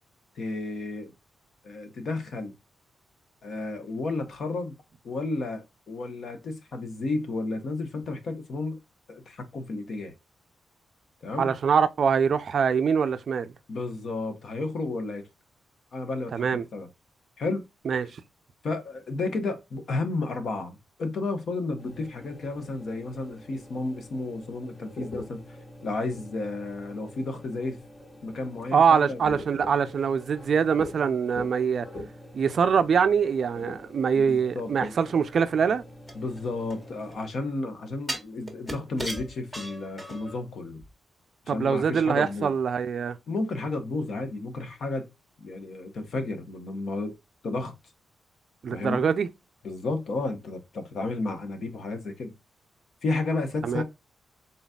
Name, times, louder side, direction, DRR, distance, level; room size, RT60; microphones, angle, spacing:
voice 1, 0.4-1.1 1.6-2.5 3.4-4.7 5.0-8.8 9.1-10.1 11.2-11.5 13.7-15.2 15.9-16.9 17.4-17.6 18.6-25.4 25.8-27.8 28.2-29.2 34.1-34.7 36.1-40.8 41.5-42.5 43.3-45.1 45.4-47.1 47.4-47.7 48.7-49.1 49.6-52.3 53.0-53.8, left 3 dB, 55° left, 1.0 m, -32 dB
voice 2, 11.4-13.5 16.3-16.7 17.9-18.2 28.7-31.9 32.3-35.8 41.5-43.2 48.6-49.3 53.6-53.8, right 6 dB, 50° right, 0.4 m, -24 dB
sound 1, 21.8-37.1, left 1 dB, 35° left, 1.3 m, -44 dB
Tin Can, 36.1-37.2 38.1-40.4 40.8-40.9, right 1 dB, 5° left, 1.3 m, -37 dB
4.0 x 3.9 x 2.3 m
wide cardioid pair, 170°, 0 cm